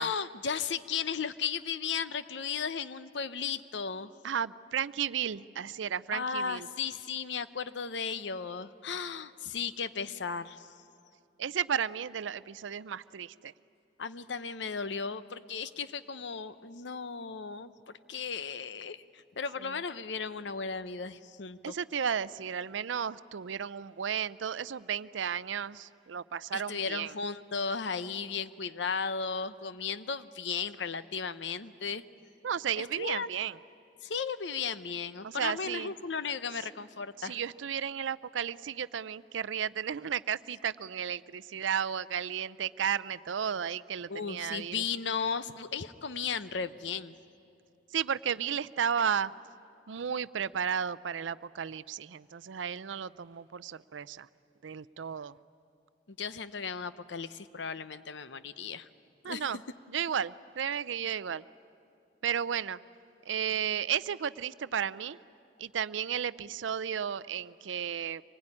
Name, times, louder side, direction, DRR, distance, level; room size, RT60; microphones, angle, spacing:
voice 1, 0.0-4.1 6.1-10.7 14.0-21.7 26.5-32.0 32.8-33.3 34.0-37.4 44.1-47.1 56.2-58.9 59.2-59.4, left 6 dB, 70° left, 14 dB, 0.8 m, -35 dB
voice 2, 4.2-6.7 11.4-13.5 19.6-19.8 21.6-27.1 32.4-33.6 35.2-35.9 37.2-44.8 47.9-49.3 49.9-54.3 54.6-55.4 59.2-59.6 59.9-61.4 62.2-62.8 63.3-65.2 65.6-68.2, right 8 dB, 85° right, 17 dB, 0.5 m, -33 dB
25.0 x 20.0 x 9.8 m, 2.6 s
head